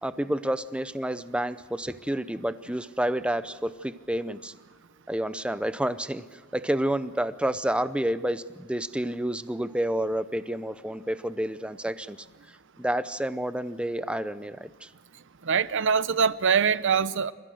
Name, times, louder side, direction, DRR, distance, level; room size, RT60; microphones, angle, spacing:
voice 1, 0.0-4.5 5.1-12.2 12.8-14.9, right 1 dB, 5° right, 13 dB, 0.6 m, -29 dB
voice 2, 15.4-17.3, right 6 dB, 60° right, 16 dB, 0.7 m, -23 dB
29.0 x 15.5 x 6.5 m, 1.5 s
head